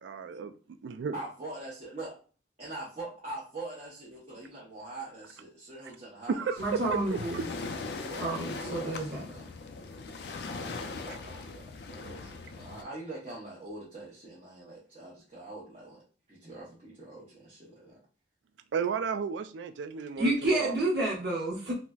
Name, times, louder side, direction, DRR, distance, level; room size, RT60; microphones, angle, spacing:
voice 1, 0.0-0.5 0.8-1.2 6.3-7.0 7.3-7.5 18.7-20.8, right 6 dB, 85° right, 11 dB, 0.3 m, -33 dB
voice 2, 1.1-2.1 2.6-7.5 8.0-9.5 10.6-16.0 16.3-18.0, right 2 dB, 35° right, -7 dB, 0.8 m, -43 dB
Waves surf, 6.5-12.8, left 3 dB, 65° left, 0.4 m, -40 dB
voice 3, 6.6-7.5 8.2-9.2 20.2-21.7, right 2 dB, 65° right, -4 dB, 1.2 m, -29 dB
4.0 x 2.1 x 2.2 m, 0.38 s
head